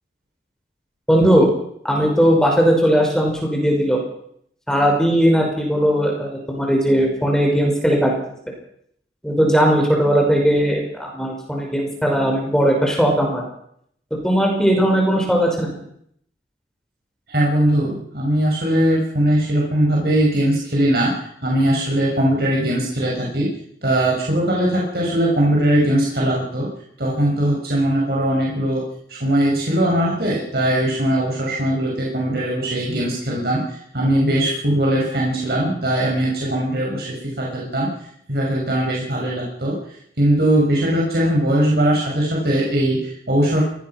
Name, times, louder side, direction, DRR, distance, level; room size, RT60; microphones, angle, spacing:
voice 1, 1.1-1.5 1.8-4.0 4.7-8.1 9.2-13.4 14.2-15.7, equal, 5° left, 0 dB, 5.6 m, -18 dB
voice 2, 17.3-23.5 23.8-26.7 27.0-28.8 29.1-37.9 38.3-39.8 40.2-43.6, right 1 dB, 60° right, -4 dB, 6.6 m, -20 dB
23.5 x 19.0 x 6.1 m, 0.70 s
head